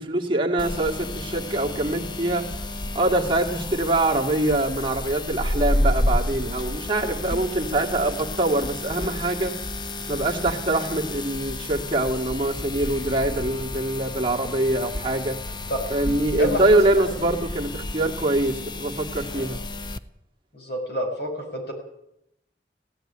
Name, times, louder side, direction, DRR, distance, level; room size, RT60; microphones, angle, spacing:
voice 1, 0.0-2.5 2.9-9.5 10.1-15.4 15.9-19.6, right 2 dB, 30° right, 0 dB, 2.2 m, -24 dB
sound 1, 0.6-20.0, left 1 dB, 25° left, 0.8 m, -31 dB
voice 2, 16.4-16.8 19.3-19.5 20.5-21.7, equal, 65° left, 2 dB, 6.8 m, -28 dB
16.5 x 16.0 x 10.0 m, 0.80 s
head